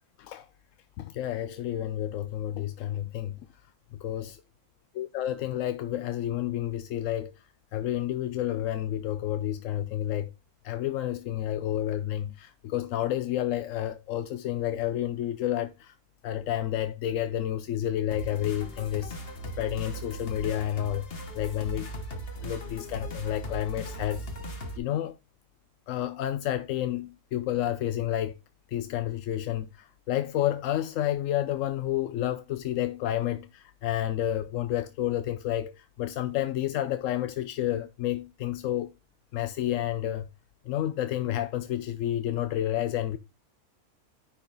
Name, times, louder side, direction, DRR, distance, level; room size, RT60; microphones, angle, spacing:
voice 1, 1.0-3.4 3.9-4.4 5.0-7.3 7.7-10.3 10.6-15.9 16.2-19.2 19.6-21.0 21.3-21.9 22.4-24.3 24.8-25.1 25.9-28.4 28.7-38.9 39.3-40.3 40.7-43.2, left 12 dB, 70° left, 0.9 m, -30 dB
sound 1, 18.1-24.8, equal, 40° left, 1.5 m, -38 dB
9.9 x 4.5 x 3.9 m
omnidirectional pair, 1.6 m